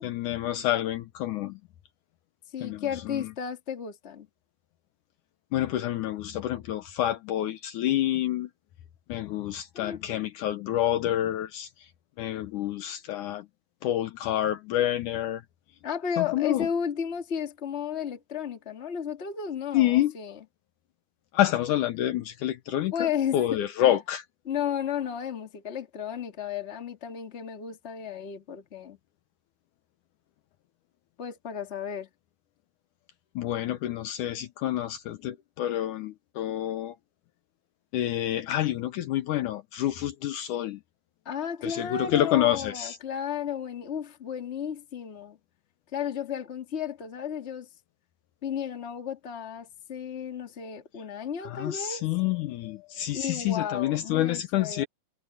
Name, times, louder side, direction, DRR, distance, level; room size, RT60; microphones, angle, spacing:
voice 1, 0.0-1.6 2.6-3.3 5.5-8.5 9.1-11.9 12.2-13.5 13.8-15.4 16.2-16.7 19.7-20.1 21.3-24.2 33.4-37.0 37.9-40.8 41.6-43.0 51.4-54.9, left 13 dB, 70° left, 2.2 m, -28 dB
voice 2, 2.5-4.3 9.7-10.0 15.8-20.4 22.9-23.6 24.4-29.0 31.2-32.1 41.2-45.4 45.9-47.7 48.4-52.0 53.1-54.8, left 8 dB, 25° left, 1.7 m, -33 dB
omnidirectional pair, 4.0 m